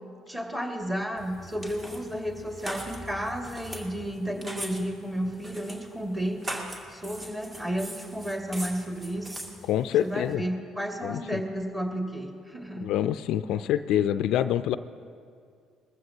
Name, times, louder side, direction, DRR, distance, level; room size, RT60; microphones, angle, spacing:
voice 1, 0.3-6.4 6.9-9.4 10.0-12.9, equal, 20° right, 1 dB, 2.3 m, -32 dB
sound 1, 1.2-10.3, right 1 dB, 35° right, 2.3 m, -41 dB
voice 2, 9.7-10.4 11.0-11.4 12.8-14.8, left 11 dB, 70° left, 12 dB, 0.3 m, -26 dB
21.0 x 14.5 x 2.9 m, 2.2 s
hypercardioid pair, 60°, 0 cm